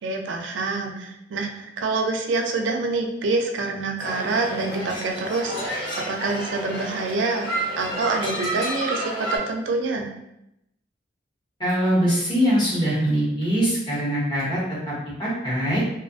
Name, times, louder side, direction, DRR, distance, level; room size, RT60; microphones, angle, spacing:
voice 1, 0.0-7.5 7.8-10.1, right 3 dB, 70° right, 3 dB, 0.4 m, -26 dB
sound 1, 4.0-9.4, right 1 dB, 70° left, 1.1 m, -30 dB
voice 2, 11.6-14.9 15.2-15.8, equal, 25° left, -8 dB, 1.0 m, -22 dB
2.6 x 2.3 x 2.6 m, 0.84 s
head